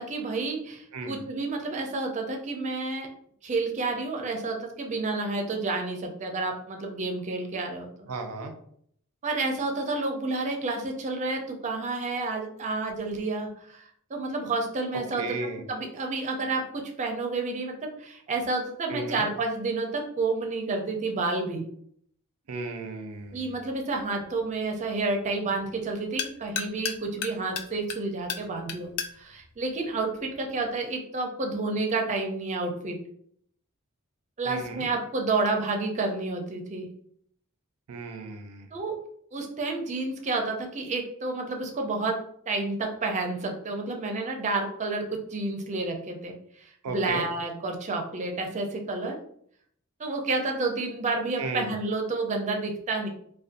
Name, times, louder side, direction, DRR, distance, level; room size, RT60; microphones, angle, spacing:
voice 1, 0.0-3.1 3.4-8.1 9.2-15.4 15.7-21.6 23.3-33.0 34.4-36.9 38.7-39.0 39.3-49.2 50.0-53.1, right 3 dB, 35° right, 2 dB, 0.4 m, -30 dB
voice 2, 8.1-8.5 14.9-15.6 18.9-19.3 22.5-23.5 34.5-34.9 37.9-38.7 46.8-47.2 51.4-51.7, right 3 dB, 90° right, 6 dB, 0.5 m, -34 dB
sound 1, 23.1-30.7, left 8 dB, 90° left, 0.3 m, -39 dB
2.6 x 2.2 x 2.5 m, 0.65 s
head